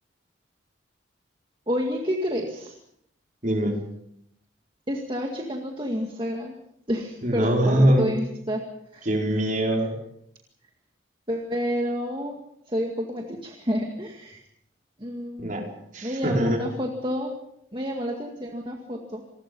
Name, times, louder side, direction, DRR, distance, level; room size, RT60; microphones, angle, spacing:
voice 1, 1.7-2.7 4.9-6.5 6.9-8.6 8.9-9.1 11.3-12.4 12.7-14.4 15.0-15.7 16.0-17.4 17.7-19.2, equal, 25° right, 2 dB, 2.1 m, -29 dB
voice 2, 3.4-3.8 7.2-8.1 9.1-9.9 15.4-15.7 15.9-16.6, right 1 dB, 40° right, 1 dB, 5.2 m, -22 dB
27.5 x 20.0 x 5.5 m, 0.75 s
head